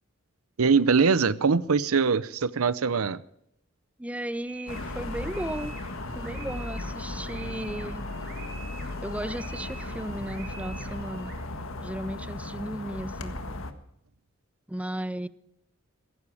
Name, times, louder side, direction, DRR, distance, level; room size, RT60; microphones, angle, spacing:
voice 1, 0.6-3.2, right 5 dB, 90° right, 0.7 m, -22 dB
voice 2, 4.0-5.8 6.1-8.1 9.0-11.3 11.8-13.4 14.7-15.3, right 1 dB, 5° right, 0.5 m, -35 dB
sound 1, 4.4-11.3, right 4 dB, 55° right, 6.9 m, -46 dB
sound 2, 4.7-13.7, left 2 dB, 70° left, 1.7 m, -36 dB
17.0 x 15.5 x 4.9 m
head